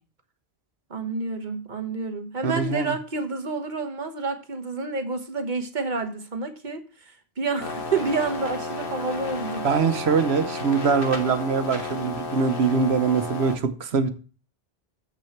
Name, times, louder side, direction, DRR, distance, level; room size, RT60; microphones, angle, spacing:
voice 1, 0.9-9.7, right 4 dB, 50° right, 6 dB, 1.2 m, -29 dB
voice 2, 2.4-3.0 9.6-14.1, right 5 dB, 90° right, 10 dB, 1.2 m, -23 dB
sound 1, 7.6-13.6, left 3 dB, 60° left, 1.4 m, -32 dB
7.5 x 6.2 x 5.8 m, 0.36 s
omnidirectional pair, 1.0 m